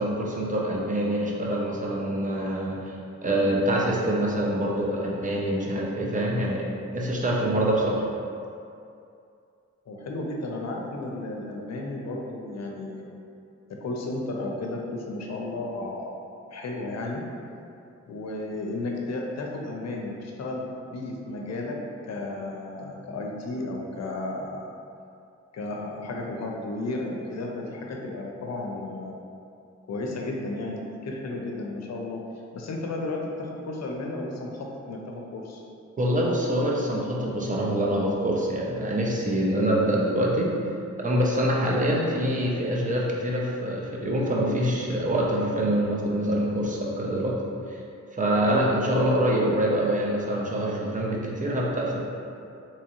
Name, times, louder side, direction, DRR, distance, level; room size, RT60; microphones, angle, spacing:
voice 1, 0.0-2.9 3.2-6.7 6.9-8.0 36.0-40.5 41.0-47.4 47.7-47.8 48.1-52.0, right 1 dB, 25° right, -3 dB, 0.6 m, -25 dB
voice 2, 9.9-13.1 13.7-16.1 16.5-17.2 18.1-21.8 22.0-24.7 25.5-29.1 29.9-32.2 32.5-35.6, left 2 dB, 60° left, 0 dB, 0.6 m, -33 dB
3.5 x 3.0 x 3.0 m, 2.5 s
cardioid pair, 90°, 30 cm